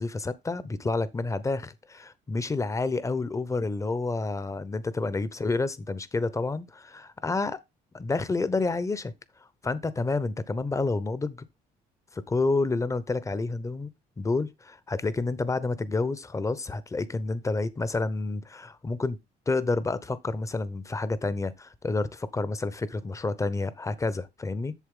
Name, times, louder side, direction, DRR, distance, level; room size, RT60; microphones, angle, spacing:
voice 1, 0.0-7.6 7.9-9.1 9.6-11.4 12.1-13.9 14.2-19.2 19.5-24.7, left 3 dB, 20° left, 0.8 m, -29 dB
8.2 x 6.7 x 3.8 m
cardioid pair, 110°, 17 cm